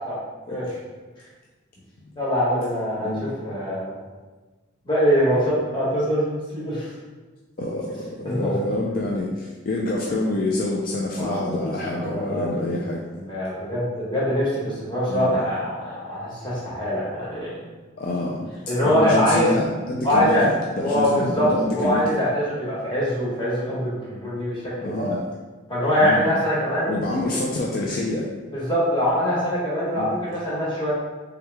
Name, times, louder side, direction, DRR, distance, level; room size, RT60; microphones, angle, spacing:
voice 1, 2.1-3.9 4.8-6.9 8.2-8.5 11.2-12.8 13.2-17.6 18.7-19.5 20.0-20.5 20.8-25.1 25.7-26.9 28.5-30.9, equal, 25° left, -8 dB, 1.2 m, -23 dB
voice 2, 3.0-3.3 7.6-13.0 15.1-15.4 18.0-20.5 20.8-22.0 24.8-25.3 26.0-26.2 26.9-28.3 30.0-30.1, left 2 dB, 45° left, -3 dB, 0.4 m, -27 dB
3.5 x 3.1 x 3.4 m, 1.3 s
head